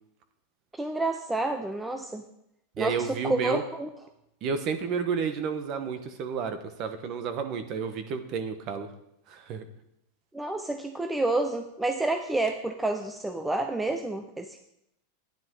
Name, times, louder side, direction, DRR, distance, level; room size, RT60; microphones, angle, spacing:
voice 1, 0.8-2.2 2.8-3.9 10.3-14.7, right 2 dB, 5° right, 6 dB, 0.5 m, -29 dB
voice 2, 2.8-3.6 4.4-8.9 9.3-9.6, right 6 dB, 35° right, 9 dB, 1.2 m, -31 dB
12.5 x 10.5 x 3.9 m, 0.81 s
supercardioid pair, 165°, 0 cm